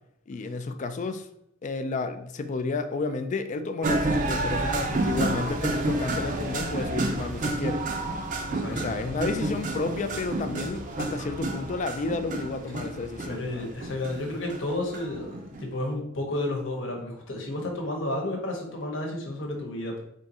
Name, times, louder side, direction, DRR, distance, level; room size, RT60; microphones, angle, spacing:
voice 1, 0.3-1.3 1.6-7.9 8.7-13.7, left 3 dB, 40° left, 9 dB, 0.3 m, -31 dB
sound 1, 3.8-15.7, right 2 dB, 40° right, 0.5 m, -30 dB
voice 2, 5.2-5.5 7.2-7.3 8.5-8.9 13.3-20.0, left 1 dB, 65° left, 1 dB, 1.0 m, -32 dB
sound 2, 7.5-13.1, equal, 80° right, 0.8 m, -47 dB
3.6 x 2.6 x 4.1 m, 0.76 s
head